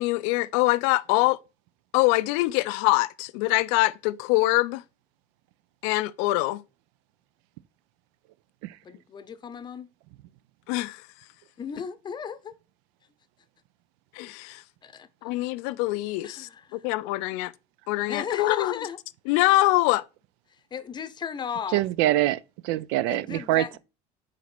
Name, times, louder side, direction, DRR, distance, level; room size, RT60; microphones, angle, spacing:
voice 1, 0.0-1.4 1.9-4.8 5.8-6.6 10.7-11.0 14.1-14.6 15.2-17.5 17.9-18.7 19.3-20.0, left 19 dB, 80° left, 0.4 m, -24 dB
voice 2, 8.8-9.9 11.6-12.6 14.8-15.3 16.2-16.8 18.1-19.0 20.5-21.8 23.1-23.8, left 7 dB, 25° left, 0.7 m, -36 dB
voice 3, 21.7-23.8, right 15 dB, 80° right, 0.4 m, -25 dB
5.0 x 4.1 x 5.9 m
cardioid pair, 125°, 17 cm